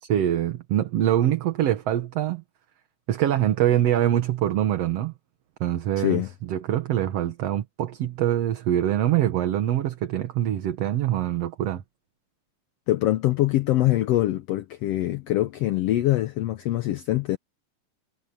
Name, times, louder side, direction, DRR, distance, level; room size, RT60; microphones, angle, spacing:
voice 1, 0.0-2.4 3.1-5.1 5.6-11.8, right 11 dB, 60° right, 2.1 m, -24 dB
voice 2, 6.0-6.3 12.9-17.4, left 15 dB, 90° left, 1.4 m, -24 dB
omnidirectional pair, 3.7 m